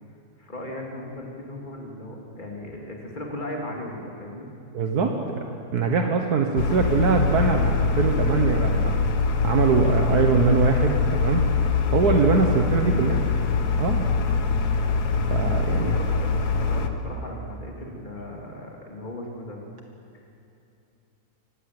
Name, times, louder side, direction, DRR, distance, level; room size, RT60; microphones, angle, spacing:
voice 1, 0.4-4.5 12.4-12.7 12.9-13.1 15.8-19.6, left 1 dB, 30° left, -1 dB, 3.3 m, -37 dB
voice 2, 4.7-5.4 5.7-9.0 9.4-11.5 11.9-13.2 13.8-14.1 15.3-15.9, right 4 dB, 75° right, 3 dB, 1.8 m, -22 dB
sound 1, 6.6-16.9, left 4 dB, 80° left, 1.8 m, -23 dB
25.0 x 19.0 x 7.8 m, 2.7 s
omnidirectional pair, 1.7 m